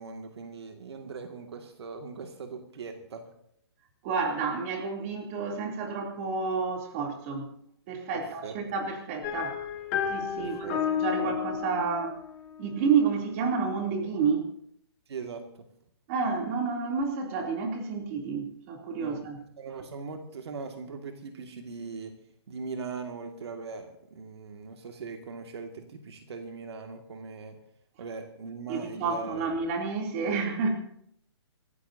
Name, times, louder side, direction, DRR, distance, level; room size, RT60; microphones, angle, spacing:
voice 1, 0.0-3.3 8.4-8.6 10.4-10.8 11.2-11.4 15.1-15.5 19.0-19.3 19.6-22.2 22.5-27.6 28.0-29.5 30.2-30.3, right 4 dB, 65° right, 4 dB, 2.0 m, -40 dB
voice 2, 4.0-7.5 7.9-9.7 10.1-12.2 12.6-14.5 16.1-19.4 28.7-30.7, right 5 dB, 30° right, 1 dB, 2.9 m, -30 dB
sound 1, 9.2-13.1, left 8 dB, 30° left, 2.4 m, -32 dB
27.0 x 14.5 x 2.7 m, 0.70 s
hypercardioid pair, 165°, 15 cm